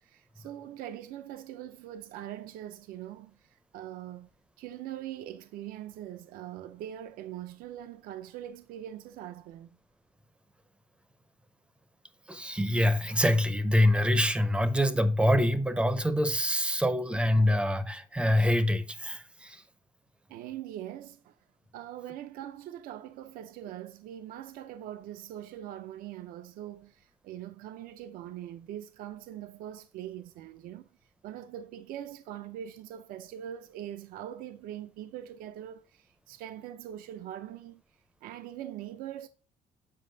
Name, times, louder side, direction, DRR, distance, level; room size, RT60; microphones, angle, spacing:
voice 1, 0.0-4.3 4.6-9.8 20.3-21.4 21.7-30.9 31.2-37.8 38.2-39.3, right 11 dB, 70° right, 0.5 m, -42 dB
voice 2, 12.3-19.6, left 1 dB, 5° right, 0.5 m, -25 dB
7.7 x 4.9 x 2.6 m
cardioid pair, 145°, 15 cm